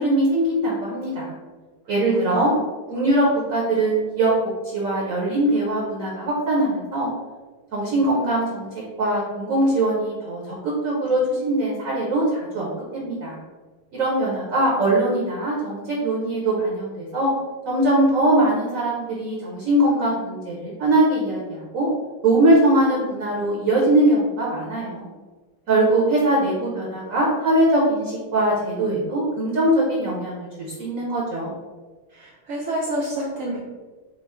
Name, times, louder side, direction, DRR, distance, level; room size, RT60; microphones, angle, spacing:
voice 1, 0.0-1.3 1.9-2.5 2.9-4.3 4.6-7.1 7.7-8.7 9.0-13.4 13.9-17.3 17.7-21.9 22.2-25.1 25.7-31.5, right 1 dB, 60° right, -4 dB, 0.9 m, -21 dB
voice 2, 1.8-2.5 32.1-33.6, right 1 dB, 85° right, -5 dB, 0.7 m, -29 dB
4.5 x 2.0 x 4.2 m, 1.3 s
omnidirectional pair, 2.3 m